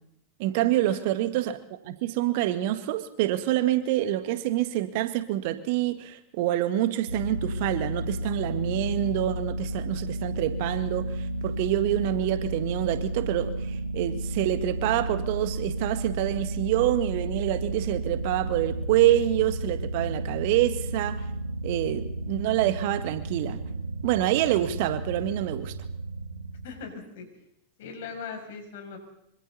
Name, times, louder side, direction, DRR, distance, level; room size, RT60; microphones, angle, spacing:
voice 1, 0.4-21.3 21.6-23.6 24.0-25.7, right 13 dB, 50° right, 11 dB, 1.7 m, -26 dB
sound 1, 7.1-26.7, right 1 dB, 80° right, 1.3 m, -32 dB
voice 2, 26.6-27.3 27.8-29.0, left 5 dB, 55° left, 2 dB, 7.2 m, -39 dB
25.5 x 25.5 x 4.1 m, 0.76 s
figure-of-eight pair, 90°, 0 cm